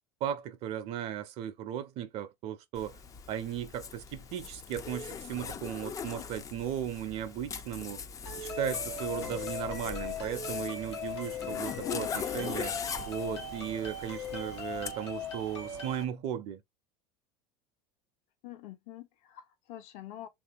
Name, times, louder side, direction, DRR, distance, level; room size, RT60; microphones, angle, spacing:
voice 1, 0.2-3.0 3.3-8.1 8.4-12.8 13.1-16.6, right 10 dB, 50° right, 0.4 m, -36 dB
Zipper (clothing), 2.7-14.9, left 6 dB, 25° left, 0.3 m, -41 dB
sound 1, 8.3-16.0, left 4 dB, 85° left, 0.9 m, -39 dB
voice 2, 18.4-20.3, left 12 dB, 55° left, 0.6 m, -46 dB
2.9 x 2.5 x 2.3 m
hypercardioid pair, 85°, 14 cm